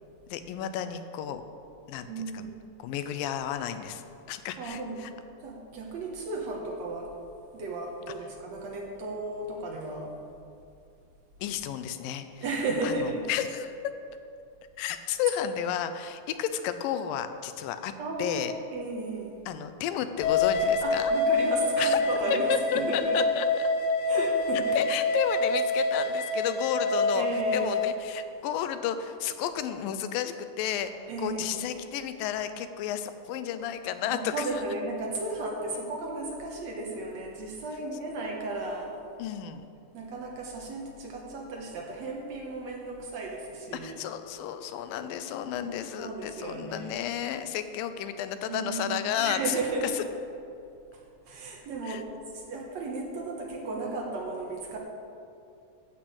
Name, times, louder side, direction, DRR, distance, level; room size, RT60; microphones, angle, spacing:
voice 1, 0.3-1.4 1.9-2.5 2.8-5.1 11.4-12.4 12.8-13.7 14.8-17.9 18.2-18.5 19.5-21.1 21.8-22.0 22.3-23.5 24.8-27.3 27.5-30.9 31.2-34.3 39.2-39.7 43.8-49.5 51.8-52.0, left 10 dB, 90° left, 10 dB, 2.4 m, -32 dB
voice 2, 2.1-2.6 4.6-5.0 5.4-7.1 7.5-10.1 12.4-13.3 18.0-19.4 20.8-23.2 24.0-24.8 27.1-27.8 31.1-31.7 34.0-39.0 39.9-44.0 46.0-46.9 48.5-50.0 50.9-54.8, right 2 dB, 60° right, 0 dB, 2.1 m, -34 dB
sound 1, 20.2-27.9, left 2 dB, 70° left, 2.2 m, -26 dB
12.5 x 6.1 x 8.0 m, 2.6 s
omnidirectional pair, 4.0 m